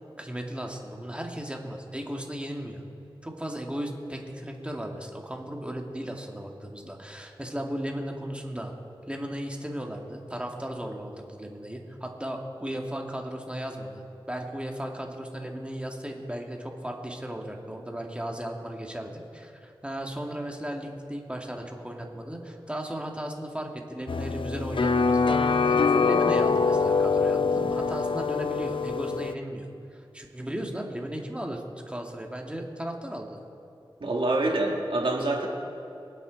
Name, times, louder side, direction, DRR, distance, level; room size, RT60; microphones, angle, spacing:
voice 1, 0.2-2.8 3.2-8.7 9.1-33.4, right 1 dB, 10° right, 1 dB, 2.1 m, -36 dB
sound 1, 24.1-29.3, left 4 dB, 70° left, 0.5 m, -24 dB
voice 2, 34.0-35.5, right 2 dB, 75° right, -1 dB, 2.4 m, -26 dB
24.5 x 8.4 x 4.1 m, 2.8 s
cardioid pair, 45°, 9 cm